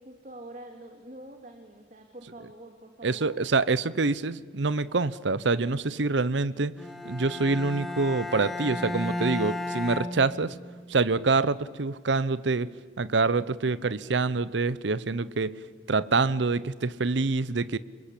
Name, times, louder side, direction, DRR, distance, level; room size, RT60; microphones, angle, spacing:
voice 1, 0.0-3.4, right 1 dB, 40° right, 4 dB, 2.1 m, -46 dB
voice 2, 3.0-6.8 7.0-10.6 10.9-12.7 13.0-15.6 15.9-17.8, right 3 dB, 75° right, 17 dB, 0.8 m, -26 dB
Bowed string instrument, 6.8-10.9, left 2 dB, ahead, 1.6 m, -34 dB
27.5 x 22.0 x 8.5 m, 1.5 s
head